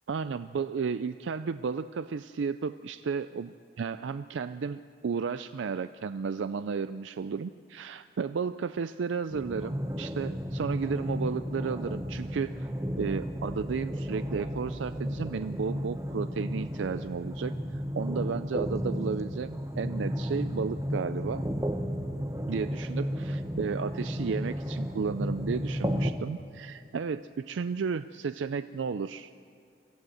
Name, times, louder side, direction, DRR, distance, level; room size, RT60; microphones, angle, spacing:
voice 1, 0.1-12.7 13.0-21.5 22.5-29.3, right 5 dB, 85° right, 12 dB, 0.4 m, -33 dB
sound 1, 9.3-26.1, equal, 15° right, 0.9 m, -33 dB
23.5 x 15.0 x 7.8 m, 2.3 s
head